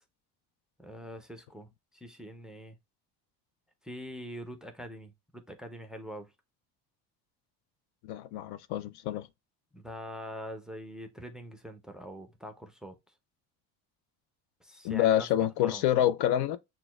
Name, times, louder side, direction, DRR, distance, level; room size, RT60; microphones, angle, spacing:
voice 1, 0.8-2.8 3.8-6.3 9.7-13.0 14.6-15.3 15.6-15.8, equal, ahead, 0.5 m, -44 dB
voice 2, 8.0-9.3 14.8-16.6, left 11 dB, 70° left, 0.5 m, -27 dB
6.0 x 2.3 x 2.2 m
cardioid pair, 115°, 40 cm